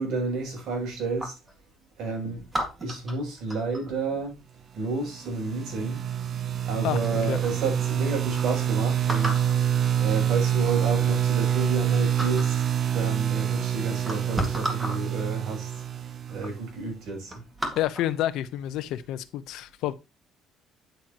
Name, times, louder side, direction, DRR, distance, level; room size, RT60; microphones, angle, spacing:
voice 1, 0.0-1.4 2.0-2.5 2.8-4.4 4.7-6.0 6.6-9.5 10.0-17.4, right 3 dB, 65° right, 6.9 m, -31 dB
sound 1, 0.6-1.5 2.5-3.9 5.6-6.0 6.7-6.8 7.0-7.6 8.0-8.1 8.3-8.4 9.1-9.6 10.5-10.6 11.1-11.9 12.2-12.6 13.4-13.5 13.9-15.0 15.8-15.9 16.3-16.5 16.9-18.1 18.6-18.9, right 1 dB, 10° right, 1.9 m, -34 dB
sound 2, 5.1-16.9, right 9 dB, 40° right, 0.6 m, -26 dB
voice 2, 17.8-19.9, left 13 dB, 75° left, 0.8 m, -29 dB
9.3 x 8.9 x 3.0 m
cardioid pair, 170°, 0 cm